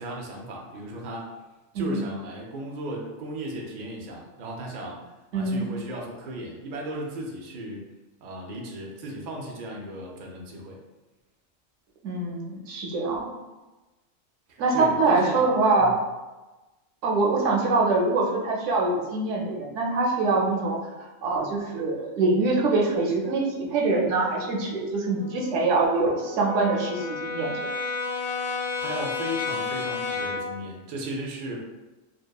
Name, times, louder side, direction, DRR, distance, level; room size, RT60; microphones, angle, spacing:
voice 1, 0.0-1.3 1.7-5.0 5.3-7.8 8.2-10.8 14.5-15.4 15.8-15.9 28.4-31.7, right 1 dB, 85° right, 0 dB, 0.4 m, -36 dB
voice 2, 5.3-5.7 12.0-13.3 14.6-15.9 17.0-27.7, right 3 dB, 70° right, -1 dB, 0.9 m, -24 dB
Brass instrument, 25.1-30.6, left 4 dB, 65° left, 0.8 m, -32 dB
2.8 x 2.2 x 2.2 m, 1.1 s
omnidirectional pair, 1.4 m